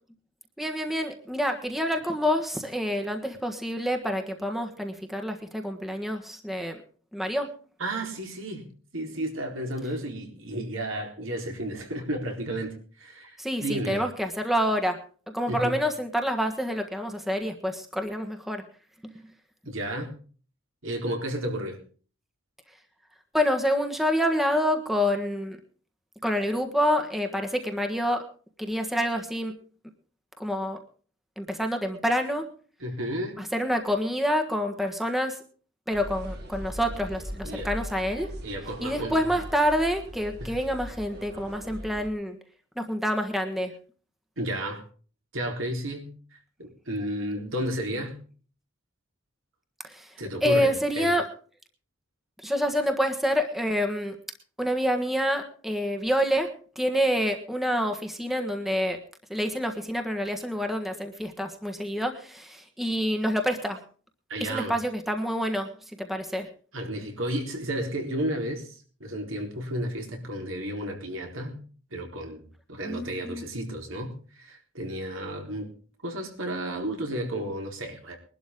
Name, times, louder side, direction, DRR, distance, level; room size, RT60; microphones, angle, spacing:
voice 1, 0.6-6.8 7.1-7.5 13.4-15.0 15.3-18.6 19.0-19.1 23.3-25.6 26.2-28.3 28.6-29.6 30.4-30.8 31.4-32.5 33.4-35.4 35.9-38.3 38.8-42.4 42.8-43.7 49.8-50.1 50.4-51.3 52.4-54.2 54.6-59.0 59.3-63.8 64.4-65.7 66.0-66.5 72.8-73.4, equal, ahead, 4 dB, 1.4 m, -27 dB
voice 2, 7.8-8.7 8.9-14.0 15.5-15.8 19.6-20.2 20.8-21.8 32.8-33.4 37.4-37.7 38.4-39.3 40.4-40.5 44.4-44.8 45.3-46.1 46.6-48.2 50.2-51.1 64.3-64.8 66.7-71.6 71.9-72.4 72.7-75.7 76.0-78.2, right 1 dB, 70° right, 3 dB, 4.1 m, -32 dB
sound 1, 35.9-42.1, equal, 50° right, 3.7 m, -39 dB
22.0 x 12.0 x 3.7 m, 0.41 s
head